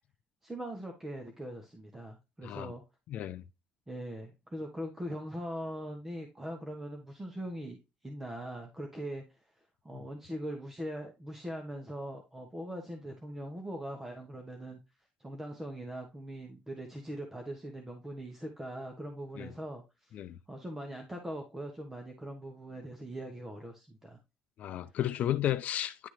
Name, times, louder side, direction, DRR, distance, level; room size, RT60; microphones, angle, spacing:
voice 1, 0.4-2.8 3.9-7.8 8.0-9.4 9.8-14.8 15.2-20.2 20.5-24.2, right 1 dB, 10° right, 1.1 m, -41 dB
voice 2, 3.1-3.4 9.9-10.1 19.4-19.5 20.1-20.4 24.6-26.1, left 12 dB, 55° left, 0.6 m, -33 dB
10.0 x 3.5 x 3.2 m
cardioid pair, 130°, 3 cm